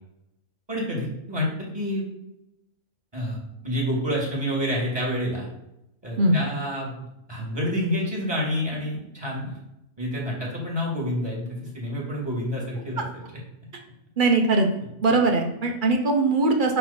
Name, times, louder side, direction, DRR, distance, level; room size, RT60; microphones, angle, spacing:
voice 1, 0.7-2.1 3.1-3.4 3.6-5.5 6.0-7.0 7.3-9.6 10.0-13.2, equal, 15° right, -3 dB, 2.1 m, -28 dB
voice 2, 14.2-14.7 15.0-16.8, right 3 dB, 50° right, 3 dB, 0.6 m, -20 dB
5.9 x 3.3 x 5.7 m, 0.88 s
omnidirectional pair, 1.6 m